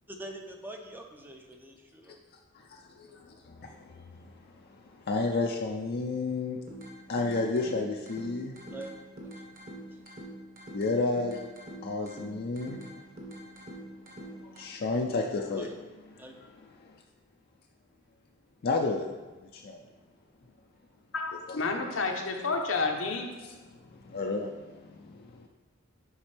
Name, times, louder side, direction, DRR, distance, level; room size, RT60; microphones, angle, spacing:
voice 1, 0.1-2.2 8.7-9.0 9.9-10.0 15.6-15.7 16.2-16.4, right 1 dB, 10° right, 3 dB, 0.5 m, -44 dB
voice 2, 2.7-4.4 4.7-6.6 7.1-8.6 10.7-11.4 11.8-12.8 14.4-15.7 16.8-16.9 18.6-19.1 19.5-19.8 23.4-25.5, left 3 dB, 50° left, 1 dB, 0.5 m, -32 dB
sound 1, 6.7-14.7, right 1 dB, 45° right, 1.2 m, -45 dB
voice 3, 21.1-23.3, left 3 dB, 70° left, 3 dB, 0.8 m, -30 dB
7.2 x 5.1 x 3.3 m, 1.2 s
head